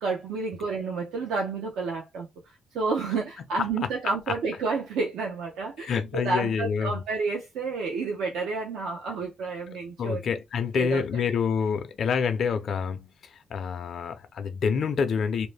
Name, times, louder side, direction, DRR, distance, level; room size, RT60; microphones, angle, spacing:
voice 1, 0.0-2.3 2.7-10.2 10.7-11.0, right 4 dB, 85° right, 0.7 m, -30 dB
voice 2, 5.8-6.9 10.0-15.5, left 6 dB, 60° left, 0.5 m, -27 dB
2.6 x 2.1 x 3.3 m
cardioid pair, 90°, 0 cm